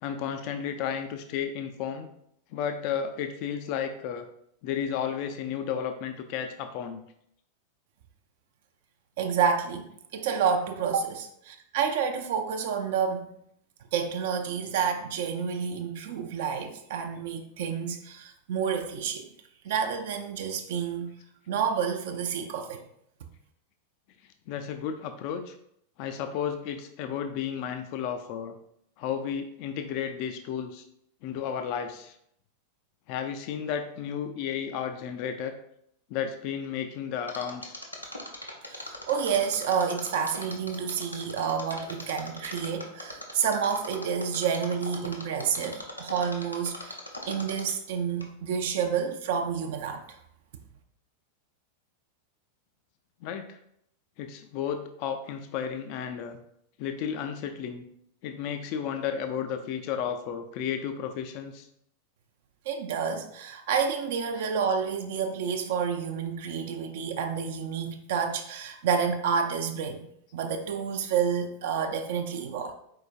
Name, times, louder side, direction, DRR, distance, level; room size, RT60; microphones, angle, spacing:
voice 1, 0.0-2.1 2.5-4.3 4.6-7.0 24.5-25.5 26.0-28.6 29.0-30.8 31.2-32.1 33.1-35.5 36.1-37.8 53.2-53.6 54.2-56.4 56.8-57.8 58.2-61.7, left 8 dB, 45° left, 7 dB, 0.4 m, -33 dB
voice 2, 9.2-13.3 13.9-19.3 19.6-21.1 21.5-22.8 38.7-47.0 47.3-50.0 62.7-70.0 70.3-72.7, right 7 dB, 55° right, 4 dB, 0.5 m, -29 dB
Mechanisms, 37.3-47.9 48.2-48.3, left 1 dB, 85° left, 0.7 m, -40 dB
4.6 x 4.4 x 2.4 m, 0.71 s
figure-of-eight pair, 90°, 0 cm